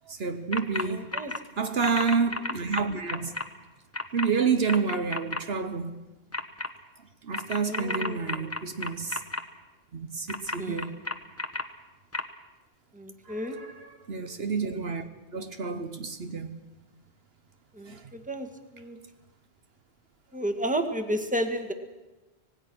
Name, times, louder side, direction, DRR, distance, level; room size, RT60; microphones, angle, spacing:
voice 1, 0.1-1.2 1.6-3.3 4.1-6.1 7.2-9.2 9.9-11.0 13.2-16.6 17.9-18.1, right 5 dB, 65° right, 1.3 m, -29 dB
sound 1, 0.5-0.8 1.1-1.4 1.8-3.4 3.9-4.3 4.7-5.4 6.3-6.7 7.3-9.4 10.3-11.6 12.1-12.2, left 2 dB, 15° left, 1.0 m, -31 dB
voice 2, 0.9-1.3 1.6-1.7 7.6-8.5 10.6-11.0 12.9-13.6 17.7-18.5 18.7-19.0 20.3-21.7, right 1 dB, 5° right, 1.6 m, -32 dB
25.5 x 19.0 x 6.2 m
omnidirectional pair, 1.1 m